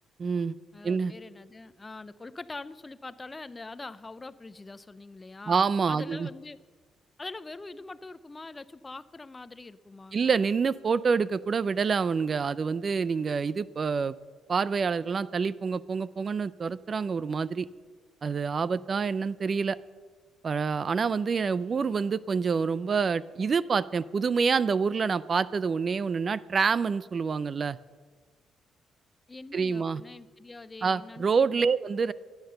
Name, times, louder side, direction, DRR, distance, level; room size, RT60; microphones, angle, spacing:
voice 1, 0.2-0.6 0.8-1.1 5.5-6.3 10.1-14.1 14.5-17.7 18.2-19.8 20.4-27.8 29.5-30.0 30.8-32.1, right 5 dB, 40° right, 19 dB, 0.4 m, -27 dB
voice 2, 0.7-6.6 7.2-10.3 29.3-31.7, left 3 dB, 25° left, 17 dB, 0.5 m, -43 dB
14.0 x 10.5 x 6.7 m, 1.5 s
cardioid pair, 90°, 0 cm